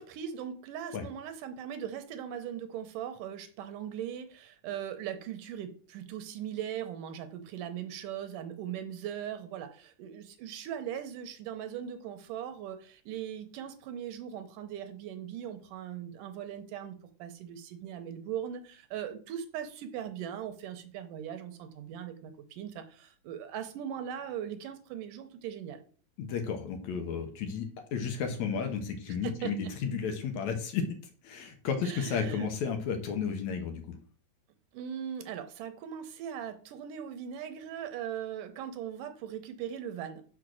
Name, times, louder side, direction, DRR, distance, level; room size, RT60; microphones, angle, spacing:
voice 1, 0.0-25.8 29.2-29.7 31.8-32.5 34.7-40.2, right 9 dB, 80° right, 8 dB, 2.4 m, -39 dB
voice 2, 26.2-30.9 31.2-34.0, left 6 dB, 65° left, 5 dB, 2.2 m, -33 dB
6.0 x 4.6 x 6.2 m, 0.44 s
omnidirectional pair, 3.7 m